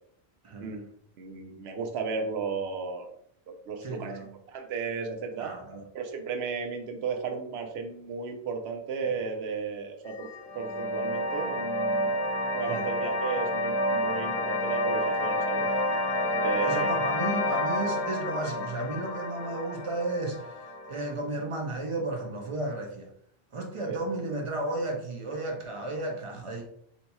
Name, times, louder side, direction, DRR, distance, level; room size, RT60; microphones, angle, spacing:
voice 1, 1.2-3.1 3.5-5.5 5.9-10.3 10.5-12.1 12.5-15.7 16.3-17.0 23.8-24.0, right 5 dB, 80° right, 5 dB, 0.9 m, -34 dB
voice 2, 3.8-4.3 5.4-5.8 12.7-12.8 16.2-20.5 20.9-23.1 23.5-26.6, right 2 dB, 45° right, 2 dB, 0.4 m, -33 dB
sound 1, 10.1-21.1, left 1 dB, 70° left, 0.9 m, -29 dB
2.7 x 2.3 x 4.0 m, 0.68 s
omnidirectional pair, 1.1 m